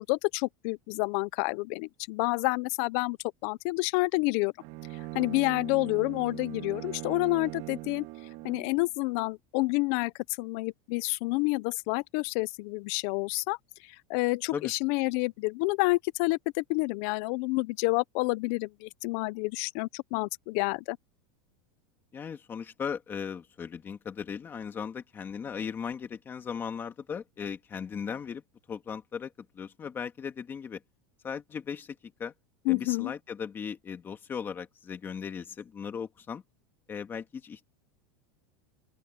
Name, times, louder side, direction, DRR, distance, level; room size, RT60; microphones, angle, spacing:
voice 1, 0.0-3.2 3.4-4.5 5.1-8.1 8.4-10.1 10.4-13.6 13.8-21.0 32.7-33.1, left 25 dB, 40° left, 0.5 m, -29 dB
Bowed string instrument, 4.6-8.8, right 19 dB, 40° right, 2.8 m, -41 dB
voice 2, 22.1-28.4 28.7-30.8 31.2-32.3 32.7-36.4 36.9-37.7, left 7 dB, 15° left, 2.0 m, -37 dB
open air
supercardioid pair, 180°, 13 cm